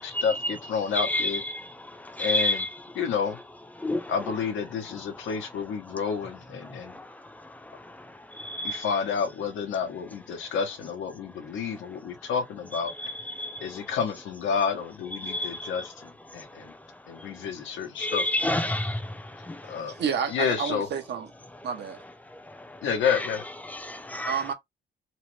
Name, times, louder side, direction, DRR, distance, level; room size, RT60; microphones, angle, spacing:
voice 1, 0.0-1.4 2.2-2.6 3.0-3.4 4.1-6.9 8.6-12.9 13.6-16.7 17.1-18.2 19.7-19.9 20.3-20.9 22.8-23.4, left 6 dB, 80° left, 1.0 m, -30 dB
voice 2, 0.9-2.7 3.8-4.1 6.6-8.9 13.0-13.9 15.2-15.9 16.3-16.5 17.2-17.4 18.0-19.8 22.3-23.3 23.7-24.4, left 1 dB, 10° left, 0.6 m, -31 dB
voice 3, 19.9-21.3 21.6-22.0 24.3-24.5, right 7 dB, 60° right, 0.9 m, -29 dB
3.2 x 2.0 x 3.1 m
cardioid pair, 90°, 20 cm